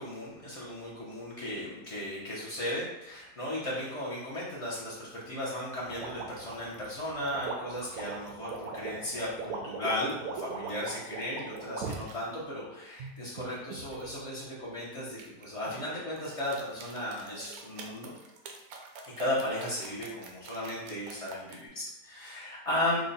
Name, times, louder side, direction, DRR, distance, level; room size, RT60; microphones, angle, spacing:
voice 1, 0.0-18.1 19.0-23.1, left 1 dB, 50° left, -8 dB, 0.4 m, -35 dB
sound 1, 5.9-12.2 12.7-14.0 15.2-15.7 16.2-21.6, right 5 dB, 70° right, 1.0 m, -41 dB
3.5 x 2.2 x 3.9 m, 0.90 s
omnidirectional pair, 1.7 m